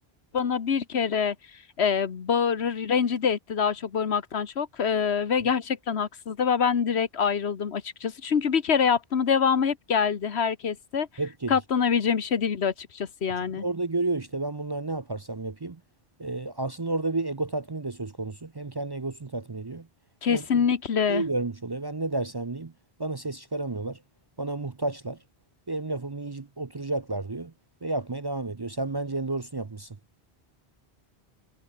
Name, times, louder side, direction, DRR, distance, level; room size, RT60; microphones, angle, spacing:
voice 1, 0.3-1.3 1.8-11.1 11.5-13.6 20.2-21.2, left 6 dB, 90° left, 1.5 m, -25 dB
voice 2, 11.2-11.5 13.3-15.8 16.2-19.9 20.3-20.6 21.1-22.7 23.0-24.0 24.4-25.2 25.7-27.5 27.8-30.0, right 2 dB, 30° right, 0.6 m, -31 dB
omnidirectional pair, 1.1 m